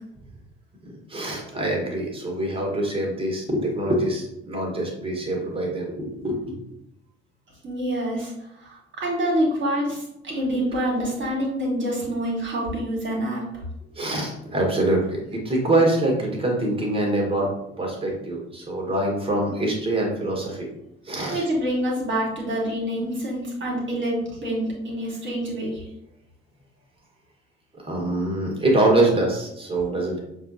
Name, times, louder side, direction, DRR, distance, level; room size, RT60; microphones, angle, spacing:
voice 1, 1.1-6.6 14.0-17.5 17.8-20.7 21.1-21.4 22.9-23.0 27.8-30.2, right 1 dB, 20° right, -1 dB, 1.6 m, -24 dB
voice 2, 7.6-8.3 8.6-13.4 21.3-25.8, equal, 40° right, -3 dB, 1.6 m, -26 dB
6.5 x 2.4 x 2.8 m, 0.82 s
figure-of-eight pair, 45°, 30 cm